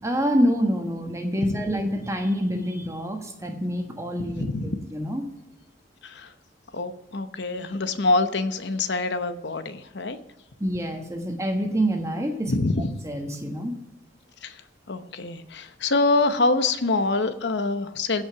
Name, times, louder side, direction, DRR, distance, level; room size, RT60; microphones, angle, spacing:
voice 1, 0.0-4.5 4.9-5.2 10.6-12.5 13.0-13.7, equal, 15° right, 4 dB, 1.3 m, -26 dB
voice 2, 4.2-4.8 6.0-6.3 6.7-10.2 12.5-12.9 14.4-14.6 14.9-18.2, left 3 dB, 65° left, 10 dB, 0.9 m, -25 dB
16.0 x 5.7 x 5.8 m, 0.97 s
head